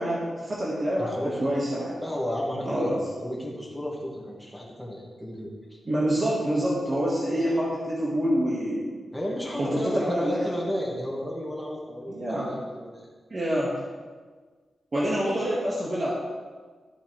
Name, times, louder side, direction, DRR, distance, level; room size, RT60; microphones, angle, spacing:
voice 1, 0.0-2.0 2.6-3.0 5.8-8.9 9.6-10.4 12.1-12.5 13.3-13.7 14.9-16.1, equal, 35° right, -6 dB, 1.8 m, -26 dB
voice 2, 1.0-1.5 2.0-5.8 9.1-13.1, equal, 5° left, -4 dB, 2.1 m, -33 dB
13.0 x 8.2 x 3.4 m, 1.5 s
wide cardioid pair, 145°, 0 cm